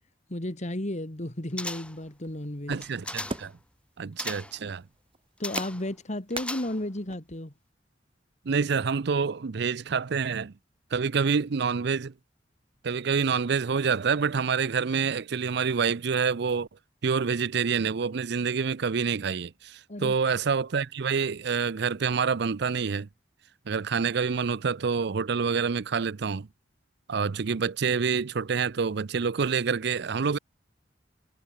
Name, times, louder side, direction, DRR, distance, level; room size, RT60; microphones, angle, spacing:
voice 1, 0.3-2.8 5.4-7.5 19.9-20.2, left 1 dB, 40° left, 2.4 m, -33 dB
sound 1, 1.6-2.1 2.7-3.5 4.2-4.6 5.4-5.9 6.3-7.0 7.3-7.4, left 2 dB, 5° left, 0.5 m, -37 dB
sound 2, 2.1-7.2, right 3 dB, 30° right, 1.4 m, -40 dB
voice 2, 2.7-3.5 4.0-4.8 8.5-10.5 10.9-12.1 12.8-16.7 17.0-23.1 23.7-26.5 27.1-30.4, right 5 dB, 65° right, 0.5 m, -27 dB
head